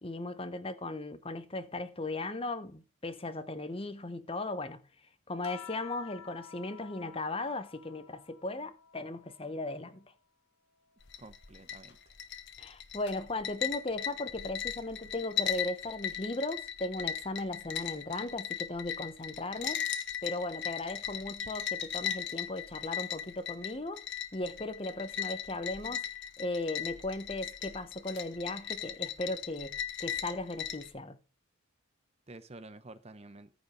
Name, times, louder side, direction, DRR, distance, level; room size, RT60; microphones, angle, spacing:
voice 1, 0.0-4.8 5.3-10.0 12.6-19.8 20.2-24.1 24.3-26.0 26.4-31.2, left 2 dB, 25° left, 0.9 m, -37 dB
sound 1, 5.4-10.2 10.7-12.4 13.6-14.1, left 8 dB, 85° left, 1.1 m, -53 dB
sound 2, 11.0-30.9, left 9 dB, 55° left, 1.3 m, -38 dB
voice 2, 11.2-12.1 32.3-33.5, right 2 dB, 30° right, 0.8 m, -50 dB
14.5 x 5.3 x 5.1 m
head